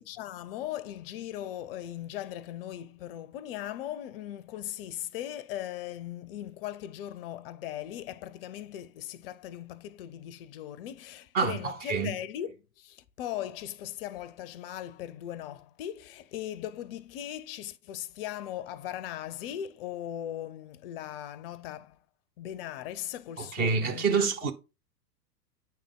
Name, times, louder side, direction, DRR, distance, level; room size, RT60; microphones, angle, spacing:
voice 1, 0.0-22.0 22.4-24.3, left 11 dB, 40° left, 0.5 m, -39 dB
voice 2, 11.3-12.1 23.4-24.5, right 5 dB, 20° right, 0.6 m, -27 dB
9.2 x 3.5 x 3.6 m
figure-of-eight pair, 95°, 49 cm